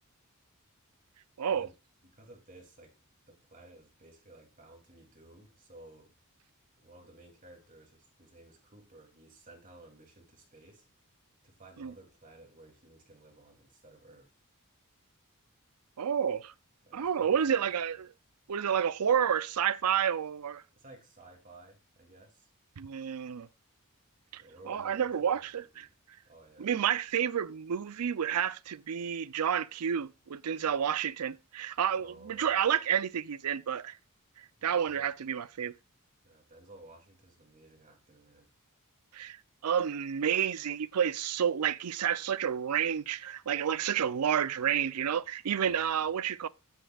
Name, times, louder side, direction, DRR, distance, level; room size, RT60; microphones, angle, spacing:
voice 1, 2.1-2.9 3.3-6.1 6.8-10.8 11.4-14.3 16.8-17.5 17.9-18.0 20.7-22.5 24.4-25.9 26.2-26.7 32.0-32.7 34.6-35.1 36.2-38.5 45.6-46.1, right 2 dB, 35° right, 2.9 m, -55 dB
voice 2, 16.0-16.5 16.9-18.1 18.5-20.6 22.8-23.5 24.3-25.9 26.6-34.0 34.4-35.7 39.1-39.4 39.6-46.5, right 8 dB, 80° right, 0.5 m, -30 dB
15.5 x 7.8 x 2.4 m
head